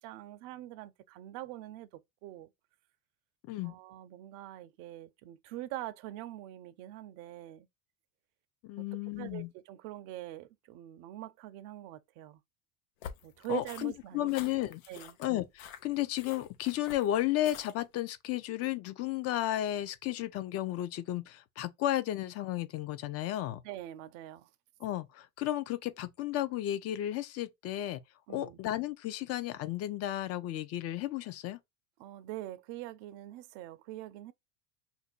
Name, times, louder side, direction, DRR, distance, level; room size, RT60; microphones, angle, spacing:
voice 1, 0.0-1.9 2.2-2.5 3.6-7.7 9.2-12.4 13.2-14.3 14.9-15.2 23.6-24.5 28.3-28.6 32.0-34.3, right 15 dB, 65° right, 0.5 m, -43 dB
voice 2, 8.6-9.5 13.5-14.8 15.2-23.6 24.8-28.0 28.3-31.6, left 14 dB, 40° left, 0.4 m, -33 dB
sound 1, 13.0-17.9, left 8 dB, 90° left, 0.7 m, -48 dB
2.6 x 2.2 x 3.9 m
supercardioid pair, 115°, 39 cm